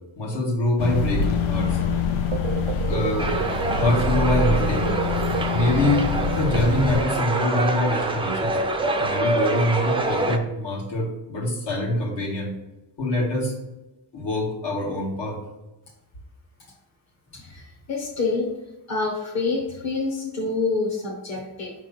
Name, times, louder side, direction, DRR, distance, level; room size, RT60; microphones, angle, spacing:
voice 1, 0.2-1.8 2.9-3.3 3.7-5.0 5.5-8.6 9.0-12.6 13.0-13.6 14.1-15.4, left 1 dB, 60° left, -3 dB, 2.0 m, -24 dB
sound 1, 0.8-7.0, left 5 dB, 85° left, 0.9 m, -25 dB
sound 2, 2.3-6.7, right 9 dB, 85° right, 0.8 m, -31 dB
sound 3, 3.2-10.4, right 2 dB, 10° right, 0.5 m, -26 dB
voice 2, 17.3-18.5 18.9-21.7, left 3 dB, 35° left, -3 dB, 1.3 m, -27 dB
6.0 x 3.7 x 5.9 m, 1.0 s
wide cardioid pair, 160°, 47 cm